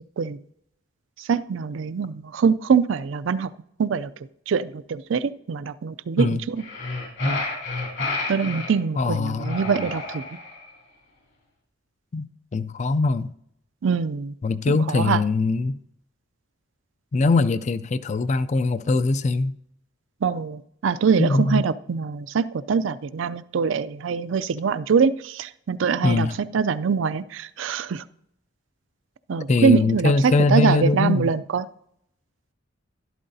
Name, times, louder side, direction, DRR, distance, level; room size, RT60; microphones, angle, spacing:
voice 1, 1.2-3.5 3.8-4.1 4.5-6.6 8.3-10.2 13.8-14.3 14.7-15.2 20.2-26.3 26.5-28.0 29.3-31.7, right 6 dB, 75° right, 0.4 m, -23 dB
sound 1, 6.6-8.7 9.4-10.6, left 2 dB, 60° left, 3.0 m, -29 dB
voice 2, 9.0-9.5 12.1-13.3 14.4-15.8 17.1-19.6 21.2-21.6 26.0-26.4 29.5-31.3, left 3 dB, 35° left, 0.4 m, -22 dB
12.5 x 11.5 x 2.7 m
head